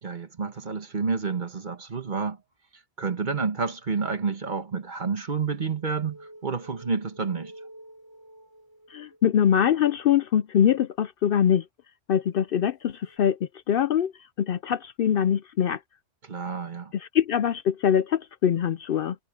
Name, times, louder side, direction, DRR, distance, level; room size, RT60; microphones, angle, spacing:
voice 1, 0.0-2.4 3.0-7.5 16.2-16.9, right 5 dB, 45° right, 1.4 m, -29 dB
sound 1, 5.0-9.8 13.0-13.2, right 1 dB, 20° right, 4.5 m, -50 dB
voice 2, 8.9-11.6 12.1-14.1 14.4-15.8 16.9-19.2, left 9 dB, 60° left, 0.7 m, -23 dB
omnidirectional pair, 1.2 m